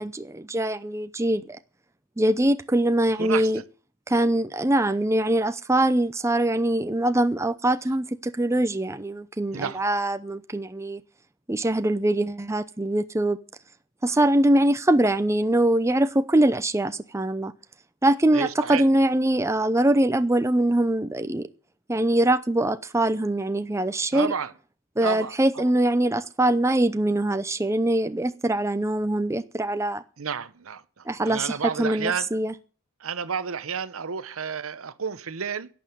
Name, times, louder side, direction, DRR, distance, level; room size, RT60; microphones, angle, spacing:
voice 1, 0.0-1.6 2.2-3.6 4.1-11.0 11.5-13.4 14.0-17.5 18.0-21.5 21.9-24.3 25.0-30.0 31.1-32.5, right 1 dB, 15° right, 0.7 m, -23 dB
voice 2, 3.2-3.6 9.5-9.8 18.3-18.8 24.1-24.5 25.0-25.7 30.2-32.3 33.0-35.7, right 6 dB, 80° right, 0.8 m, -31 dB
11.5 x 8.6 x 9.3 m
head